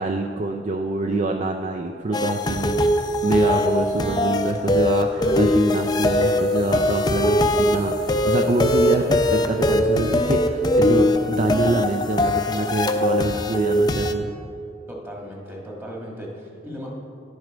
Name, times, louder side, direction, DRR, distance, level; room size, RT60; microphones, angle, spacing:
voice 1, 0.0-14.3, right 2 dB, 40° right, 4 dB, 0.4 m, -25 dB
sound 1, 2.1-14.1, left 1 dB, 25° left, 0.5 m, -21 dB
voice 2, 14.9-16.9, equal, 15° right, -1 dB, 1.5 m, -36 dB
10.5 x 6.4 x 5.0 m, 2.6 s
head